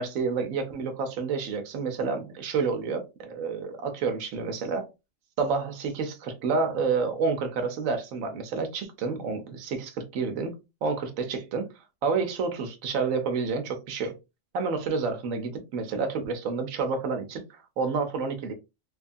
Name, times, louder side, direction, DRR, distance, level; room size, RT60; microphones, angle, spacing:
voice 1, 0.0-4.9 5.4-11.7 12.0-14.1 14.5-18.5, right 4 dB, 80° right, 1.1 m, -29 dB
3.1 x 2.4 x 2.5 m
omnidirectional pair, 1.4 m